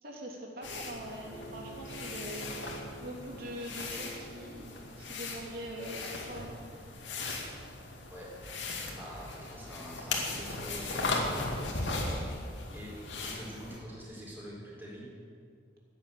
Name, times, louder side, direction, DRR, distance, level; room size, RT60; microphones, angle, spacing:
voice 1, 0.0-6.5 12.2-12.3, right 1 dB, 55° right, -1 dB, 3.1 m, -43 dB
sound 1, 0.6-13.8, left 2 dB, 90° left, 2.4 m, -38 dB
Bowed string instrument, 1.2-6.3, right 2 dB, 35° right, 4.4 m, -50 dB
voice 2, 8.9-11.6 12.7-15.1, equal, 10° right, -5 dB, 4.2 m, -45 dB
14.5 x 10.0 x 7.9 m, 2.2 s
head